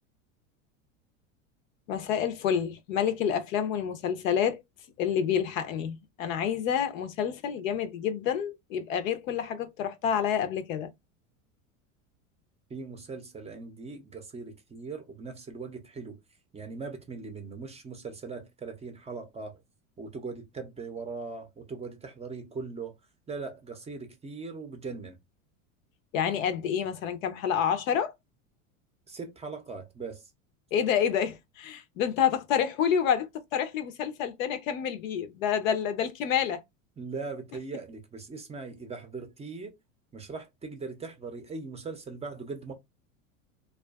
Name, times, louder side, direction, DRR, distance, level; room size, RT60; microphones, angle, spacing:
voice 1, 1.9-4.6 5.0-10.9 26.1-28.1 30.7-36.6, left 8 dB, 75° left, 0.7 m, -28 dB
voice 2, 12.7-16.2 16.5-19.5 20.0-22.9 23.3-25.2 29.1-30.3 37.0-39.7 40.1-42.7, right 4 dB, 15° right, 0.5 m, -40 dB
2.4 x 2.3 x 2.2 m
hypercardioid pair, 100°, 41 cm